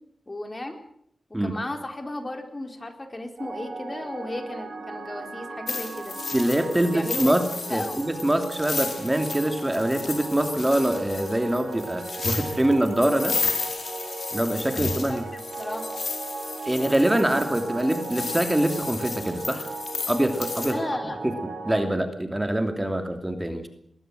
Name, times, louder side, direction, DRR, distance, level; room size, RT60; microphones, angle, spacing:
voice 1, 0.3-0.8 1.4-6.2 6.8-7.4 7.7-8.1 14.7-15.2 15.6-16.0 20.7-21.2, left 1 dB, 30° left, 6 dB, 3.9 m, -34 dB
sound 1, 3.4-21.8, right 3 dB, 80° right, 7.3 m, -37 dB
sound 2, 5.7-20.7, left 4 dB, 70° left, 4.7 m, -33 dB
voice 2, 6.3-7.4 7.7-13.4 14.3-15.3 16.6-19.7 20.1-20.8 21.2-21.3 21.6-23.7, right 1 dB, 15° right, 6 dB, 2.9 m, -24 dB
20.5 x 18.0 x 7.8 m, 0.69 s
cardioid pair, 55°, 0 cm